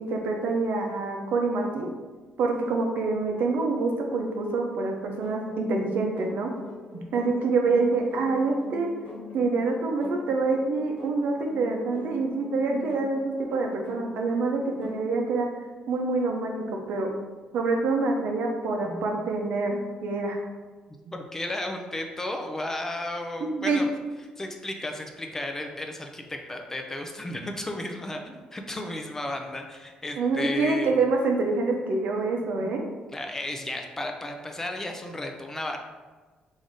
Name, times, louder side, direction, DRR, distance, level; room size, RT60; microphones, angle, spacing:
voice 1, 0.0-1.9 2.4-6.5 6.9-8.9 9.3-15.5 15.9-17.1 17.5-20.4 21.1-21.2 23.4-23.8 30.2-32.8, right 3 dB, 75° right, 2 dB, 0.6 m, -26 dB
sound 1, 5.2-15.2, left 3 dB, 55° left, 1.2 m, -43 dB
voice 2, 21.1-23.9 24.4-30.9 33.1-35.8, left 1 dB, 15° left, 3 dB, 0.4 m, -34 dB
3.4 x 2.6 x 3.6 m, 1.3 s
cardioid pair, 115°, 3 cm